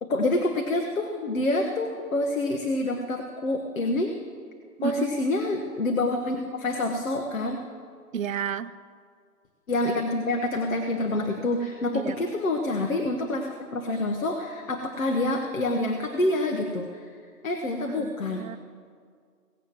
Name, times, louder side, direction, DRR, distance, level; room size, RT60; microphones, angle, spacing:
voice 1, 0.0-4.1 4.8-7.6 9.7-17.0 17.4-18.4, left 2 dB, 55° left, 3 dB, 1.2 m, -27 dB
voice 2, 4.8-5.1 8.1-8.8 11.9-12.2 17.9-18.6, right 8 dB, 55° right, 12 dB, 0.5 m, -31 dB
17.5 x 7.4 x 7.4 m, 2.1 s
hypercardioid pair, 165°, 48 cm